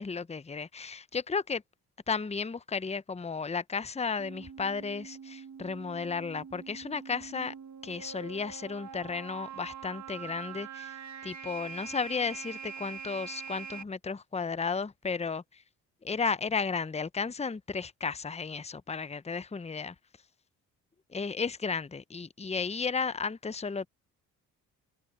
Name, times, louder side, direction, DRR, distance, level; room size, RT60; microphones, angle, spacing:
voice 1, 0.0-1.6 2.1-7.5 7.8-10.9 11.2-15.4 16.0-19.9 21.1-23.9, left 5 dB, 15° left, 0.9 m, -34 dB
sound 1, 4.2-13.8, right 7 dB, 45° right, 2.0 m, -44 dB
hypercardioid pair, 50°, 41 cm